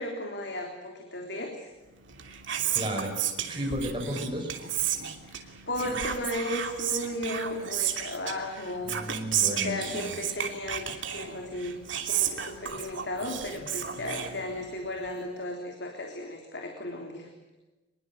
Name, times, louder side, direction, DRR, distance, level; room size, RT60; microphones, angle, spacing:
voice 1, 0.0-1.7 5.2-9.0 9.5-11.8 12.1-17.3, left 1 dB, 60° left, 2 dB, 3.6 m, -35 dB
Whispering, 2.0-14.9, right 9 dB, 80° right, 2.9 m, -33 dB
voice 2, 2.7-3.1 3.5-4.5 8.8-10.2, equal, 25° right, 3 dB, 6.2 m, -33 dB
25.0 x 22.5 x 7.9 m, 1.1 s
head